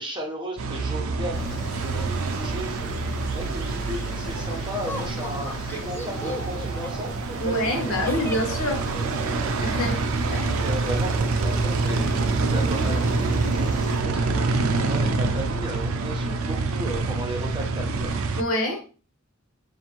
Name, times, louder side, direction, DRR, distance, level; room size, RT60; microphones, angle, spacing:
voice 1, 0.0-3.0 3.3-7.1 7.4-8.1 10.4-14.5 14.9-18.1, equal, 25° right, 0.9 m, -35 dB
sound 1, 0.6-18.4, right 3 dB, 90° right, 0.4 m, -26 dB
sound 2, 1.3-14.0, equal, 40° left, 1.3 m, -39 dB
Laughter, 4.9-9.9 11.0-11.8 12.1-12.2 12.6-13.0, left 1 dB, 10° left, 0.4 m, -38 dB
voice 2, 7.4-8.9 9.6-10.5 18.4-18.8, left 1 dB, 90° left, 1.2 m, -26 dB
5.1 x 2.7 x 2.9 m
head